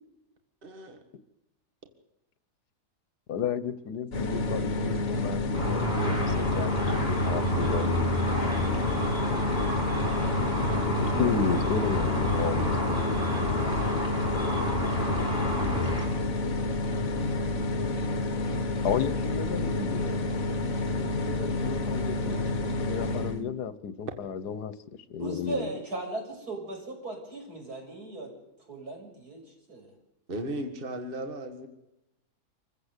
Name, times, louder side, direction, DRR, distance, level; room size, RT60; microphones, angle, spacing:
voice 1, 0.6-1.0 30.3-31.7, right 1 dB, 35° right, 5 dB, 2.1 m, -36 dB
voice 2, 3.3-8.0 10.8-13.2 18.8-20.2 20.9-22.5 22.9-24.7 25.1-25.7, left 7 dB, 80° left, 15 dB, 1.6 m, -33 dB
sound 1, 4.1-23.4, left 2 dB, 60° left, 1.9 m, -29 dB
Car / Traffic noise roadway noise / Engine, 5.5-16.1, equal, 25° left, 5.6 m, -30 dB
voice 3, 25.2-28.3 28.7-29.4 29.7-29.9, right 2 dB, 75° right, 1 dB, 7.5 m, -37 dB
27.0 x 15.5 x 8.2 m, 0.90 s
omnidirectional pair, 1.7 m